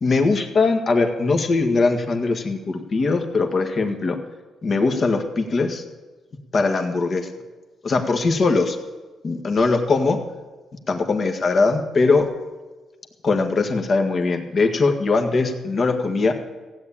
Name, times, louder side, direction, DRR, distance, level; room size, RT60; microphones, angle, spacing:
voice 1, 0.0-4.2 4.6-5.8 6.5-7.3 7.8-8.8 9.2-10.2 10.9-12.3 13.2-16.3, left 3 dB, 45° left, 5 dB, 1.8 m, -20 dB
16.0 x 8.6 x 8.8 m, 1.3 s
cardioid pair, 90°, 0 cm